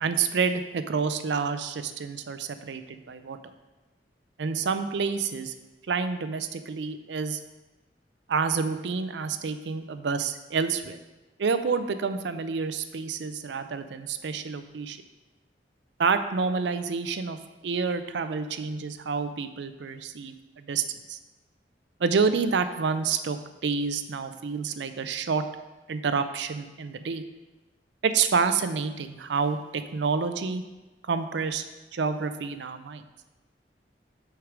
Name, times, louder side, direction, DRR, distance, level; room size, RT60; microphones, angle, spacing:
voice 1, 0.0-3.4 4.4-5.5 5.9-7.4 8.3-11.0 11.4-15.0 16.0-17.4 17.6-20.3 20.7-21.2 22.0-25.4 25.9-27.2 28.0-30.6 31.0-31.6 31.9-33.0, right 5 dB, 85° right, 10 dB, 0.5 m, -28 dB
6.4 x 4.7 x 5.0 m, 1.2 s
head